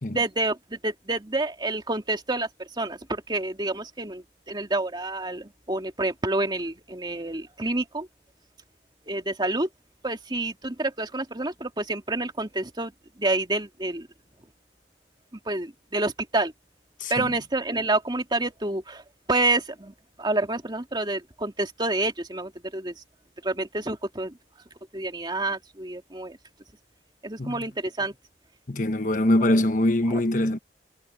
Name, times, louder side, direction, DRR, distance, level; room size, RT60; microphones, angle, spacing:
voice 1, 0.1-8.1 9.1-9.7 10.0-14.1 15.3-16.5 17.1-23.0 23.4-24.4 24.9-26.4 27.2-28.2 30.1-30.2, right 2 dB, 25° right, 2.6 m, -28 dB
voice 2, 28.7-30.6, left 1 dB, 50° left, 1.2 m, -23 dB
head